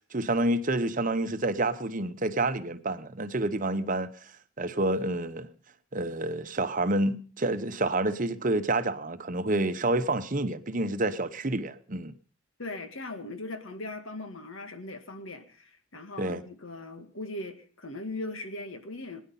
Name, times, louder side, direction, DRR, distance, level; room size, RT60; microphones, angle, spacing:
voice 1, 0.1-4.1 4.6-5.5 5.9-12.1 16.2-16.4, right 2 dB, 40° right, 0.9 m, -28 dB
voice 2, 12.6-19.2, left 2 dB, 80° left, 2.0 m, -39 dB
20.5 x 10.5 x 5.5 m
head